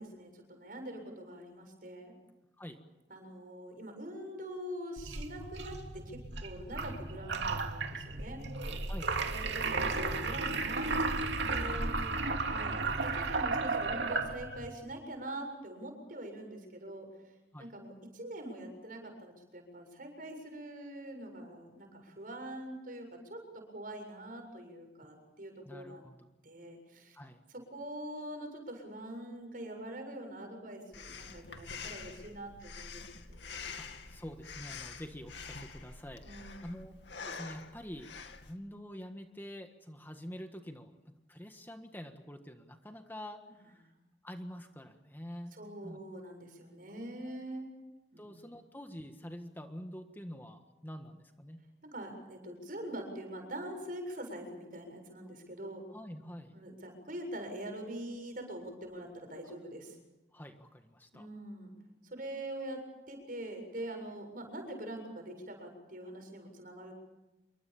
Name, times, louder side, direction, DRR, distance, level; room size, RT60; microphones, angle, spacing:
voice 1, 0.0-2.2 3.1-8.4 9.3-11.0 11.4-12.2 12.4-17.1 17.6-26.0 26.4-27.2 27.5-33.5 36.2-36.7 43.6-43.7 45.5-47.7 48.1-48.3 51.9-55.8 56.5-59.9 61.1-61.7 62.0-62.8 63.1-66.9, right 1 dB, 50° right, 5 dB, 7.5 m, -44 dB
sound 1, 5.0-14.7, right 3 dB, 85° right, 2.7 m, -34 dB
voice 2, 8.9-9.3 11.7-11.8 17.5-17.7 25.6-26.3 27.1-27.4 33.8-36.9 37.2-38.1 38.4-40.9 41.3-43.4 44.2-45.6 45.8-46.0 47.3-47.4 48.2-51.6 55.9-56.5 60.3-61.3, equal, 10° left, 5 dB, 1.6 m, -46 dB
Breathing, 30.9-38.5, left 5 dB, 80° left, 2.5 m, -46 dB
27.5 x 24.5 x 7.2 m, 1.0 s
head